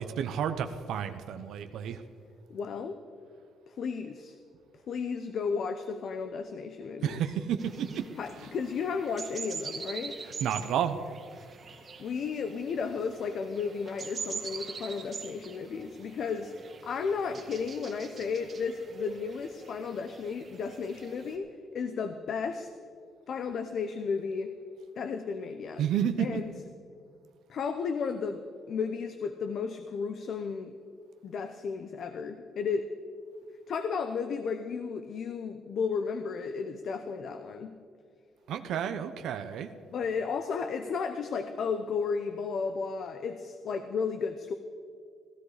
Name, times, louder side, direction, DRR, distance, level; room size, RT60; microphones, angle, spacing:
voice 1, 0.0-2.0 7.0-8.0 10.4-11.0 25.8-26.4 38.5-39.7, right 9 dB, 75° right, 8 dB, 0.8 m, -31 dB
voice 2, 2.5-3.0 3.7-4.4 4.9-7.2 8.2-10.2 12.0-16.5 16.8-22.7 23.3-24.5 25.0-25.8 26.2-26.5 27.5-28.4 28.7-30.7 31.2-32.9 33.7-37.7 39.9-44.5, left 5 dB, 60° left, 8 dB, 0.8 m, -33 dB
sound 1, 7.6-21.3, right 5 dB, 40° right, 1.9 m, -44 dB
16.0 x 13.0 x 4.9 m, 2.3 s
cardioid pair, 100°, 0 cm